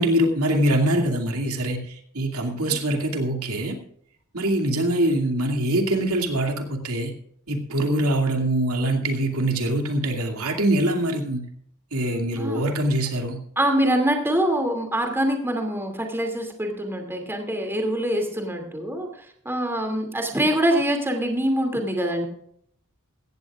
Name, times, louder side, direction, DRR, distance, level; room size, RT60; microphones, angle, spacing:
voice 1, 0.0-3.8 4.3-7.1 7.5-11.4 11.9-13.4, right 1 dB, 80° right, 4 dB, 2.5 m, -23 dB
voice 2, 13.6-19.1 19.4-22.3, right 1 dB, 10° right, 3 dB, 2.6 m, -24 dB
16.5 x 15.5 x 2.5 m, 0.68 s
head